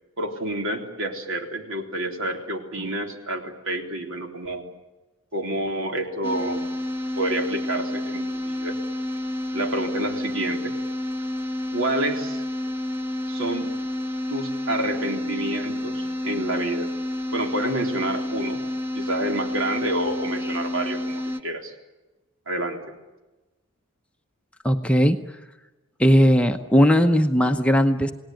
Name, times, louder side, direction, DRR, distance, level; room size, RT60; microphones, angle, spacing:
voice 1, 0.2-4.6 5.3-6.8 7.2-8.8 9.1-9.2 9.5-10.7 11.7-12.4 13.3-13.7 14.3-16.9 17.3-18.6 18.9-21.7 22.5-22.8, right 1 dB, 65° right, 4 dB, 3.7 m, -28 dB
sound 1, 6.2-21.4, left 1 dB, 10° right, 1.1 m, -29 dB
voice 2, 24.6-25.2 26.0-28.1, equal, 5° left, 5 dB, 0.9 m, -18 dB
29.0 x 19.0 x 9.2 m, 1.1 s
head